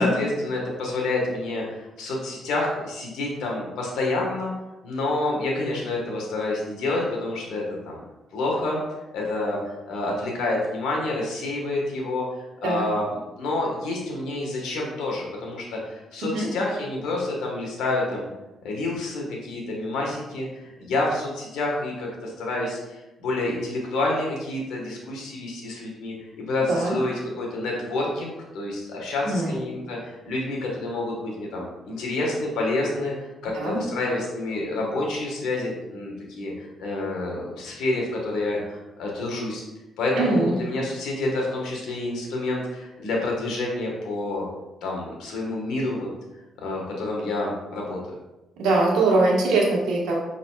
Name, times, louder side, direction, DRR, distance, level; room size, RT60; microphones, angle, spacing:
voice 1, 0.0-4.5 4.8-8.0 8.3-8.8 9.1-12.2 12.6-18.3 18.6-39.6 40.0-44.4 44.8-46.1 46.6-48.0, left 2 dB, 85° left, -2 dB, 1.3 m, -28 dB
voice 2, 29.2-29.6 33.5-33.8 40.1-40.6 48.6-50.2, right 2 dB, 90° right, -2 dB, 1.1 m, -22 dB
5.4 x 3.9 x 2.3 m, 1.0 s
cardioid pair, 90°, 0 cm